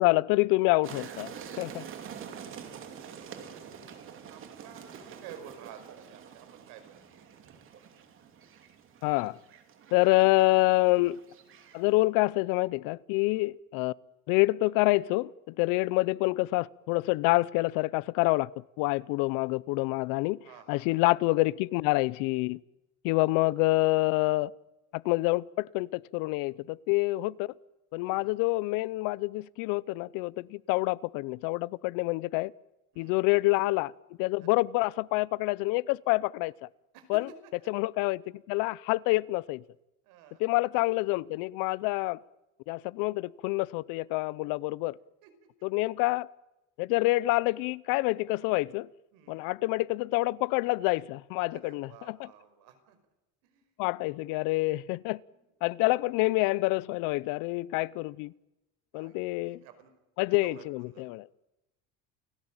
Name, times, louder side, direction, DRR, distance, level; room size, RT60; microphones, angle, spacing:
voice 1, 0.0-1.3 1.6-1.8 9.0-9.4 9.9-11.2 11.7-13.9 14.3-15.3 15.6-18.5 18.8-20.4 20.7-22.6 23.0-24.5 24.9-27.5 27.9-32.5 33.0-33.9 34.2-36.5 37.1-37.3 37.7-38.2 38.5-39.6 40.4-42.2 42.7-44.9 45.6-46.3 46.8-48.9 49.3-52.3 53.8-55.2 55.6-58.3 58.9-59.6 60.2-61.3, left 21 dB, 90° left, 0.8 m, -27 dB
sound 1, 0.8-12.0, right 7 dB, 40° right, 2.7 m, -46 dB
voice 2, 2.6-3.0 3.3-3.6 4.2-7.1 13.3-13.5 20.4-21.0 28.0-28.3 32.9-33.2 34.4-34.5 36.9-37.7 40.0-40.4 45.2-45.3 49.1-49.5 51.5-53.0 53.4-53.7 55.3-55.4 58.9-59.9 60.3-61.0, right 9 dB, 85° right, 5.4 m, -52 dB
29.5 x 17.5 x 8.9 m
cardioid pair, 175°, 32 cm